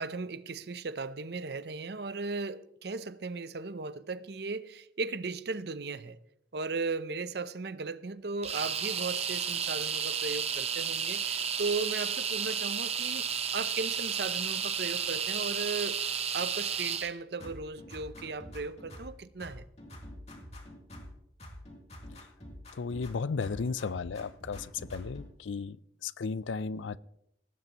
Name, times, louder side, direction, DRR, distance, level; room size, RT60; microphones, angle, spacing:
voice 1, 0.0-6.2 6.5-13.2 13.5-16.0 16.3-19.7, right 4 dB, 60° right, 0.6 m, -36 dB
sound 1, 8.4-17.1, right 7 dB, 35° right, 0.9 m, -32 dB
sound 2, 17.4-19.1 19.4-21.1 21.4-23.1 23.4-25.3, left 1 dB, 35° left, 2.9 m, -46 dB
voice 2, 22.7-25.8 26.0-27.0, left 4 dB, 85° left, 0.5 m, -34 dB
18.0 x 16.0 x 3.0 m
head